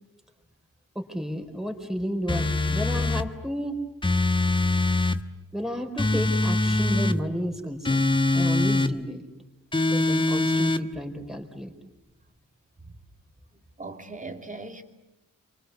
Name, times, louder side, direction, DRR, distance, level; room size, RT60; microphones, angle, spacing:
voice 1, 0.9-3.8 5.5-8.0 8.3-9.2 9.9-11.7, equal, ahead, 4.5 m, -32 dB
sound 1, 2.3-3.3 4.0-5.2 6.0-7.2 7.8-8.9 9.7-10.8, left 2 dB, 15° left, 1.2 m, -23 dB
voice 2, 13.8-14.8, right 3 dB, 25° right, 2.7 m, -38 dB
29.5 x 24.5 x 8.3 m
wide cardioid pair, 125°, 32 cm